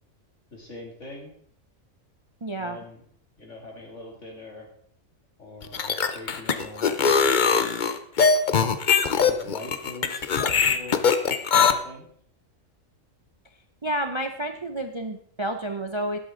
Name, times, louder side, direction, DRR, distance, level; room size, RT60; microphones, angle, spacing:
voice 1, 0.5-1.3 2.6-3.0 3.4-4.7 5.4-7.7 9.0-11.1 11.5-12.1, left 2 dB, 60° left, 0 dB, 3.1 m, -42 dB
voice 2, 2.4-2.8 13.8-16.2, right 1 dB, 30° right, 7 dB, 0.5 m, -30 dB
sound 1, 5.6-11.7, left 6 dB, 45° left, 0.8 m, -21 dB
12.5 x 11.0 x 3.8 m, 0.62 s
omnidirectional pair, 1.4 m